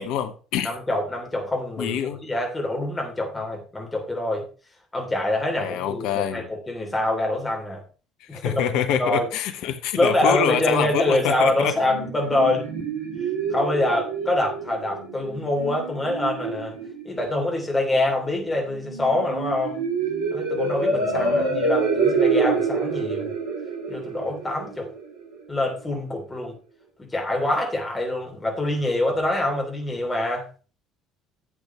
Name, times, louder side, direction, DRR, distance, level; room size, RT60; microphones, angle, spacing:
voice 1, 0.0-0.7 1.8-2.2 5.6-6.5 8.2-11.7 21.1-21.5, left 9 dB, 55° left, 0.9 m, -26 dB
voice 2, 0.6-4.4 4.9-7.8 8.3-8.6 9.0-9.3 9.9-12.6 13.5-16.8 17.0-19.8 20.3-23.3 23.9-24.9 25.5-26.6 27.0-30.5, left 1 dB, 15° left, 3.4 m, -25 dB
sound 1, 11.4-25.4, right 4 dB, 65° right, 2.1 m, -27 dB
12.0 x 8.1 x 3.2 m
figure-of-eight pair, 55°, 0 cm